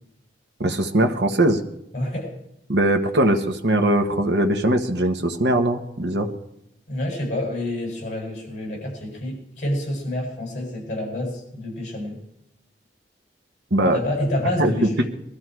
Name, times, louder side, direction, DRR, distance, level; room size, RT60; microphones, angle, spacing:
voice 1, 0.6-1.6 2.7-6.3 13.7-14.0 14.6-15.0, right 1 dB, 75° right, 4 dB, 1.3 m, -20 dB
voice 2, 1.9-2.3 6.9-12.2 13.9-15.1, left 1 dB, 40° left, 0 dB, 7.7 m, -28 dB
22.5 x 13.5 x 4.7 m, 0.83 s
head